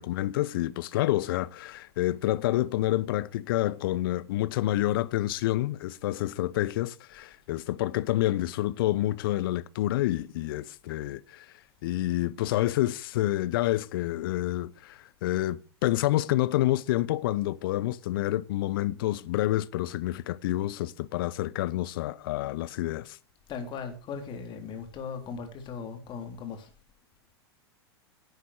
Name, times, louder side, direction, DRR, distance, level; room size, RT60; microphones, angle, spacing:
voice 1, 0.0-11.5 11.8-23.2, left 15 dB, 55° left, 0.8 m, -28 dB
voice 2, 23.5-26.7, left 6 dB, 35° left, 3.3 m, -38 dB
11.5 x 8.1 x 6.4 m
figure-of-eight pair, 95°, 14 cm